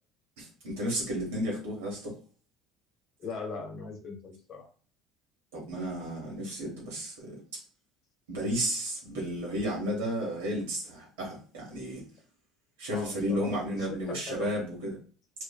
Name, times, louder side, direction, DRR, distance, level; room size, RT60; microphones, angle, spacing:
voice 1, 0.4-2.1 5.5-7.4 8.3-12.0 12.8-14.9, equal, 80° right, -2 dB, 1.2 m, -33 dB
voice 2, 3.2-4.7 12.9-14.6, left 4 dB, 55° left, 3 dB, 0.9 m, -40 dB
2.5 x 2.4 x 2.3 m, 0.39 s
hypercardioid pair, 65°, 0 cm